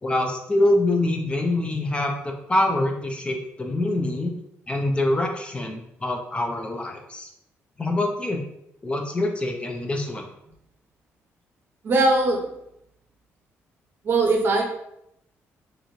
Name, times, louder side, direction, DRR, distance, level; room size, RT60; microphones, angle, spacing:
voice 1, 0.0-4.3 4.7-7.3 7.8-8.4 8.8-10.2, left 1 dB, 20° left, 2 dB, 0.4 m, -25 dB
voice 2, 11.8-12.5 14.0-14.6, right 2 dB, 45° right, 2 dB, 0.6 m, -20 dB
2.9 x 2.5 x 2.7 m, 0.79 s
cardioid pair, 120°, 5 cm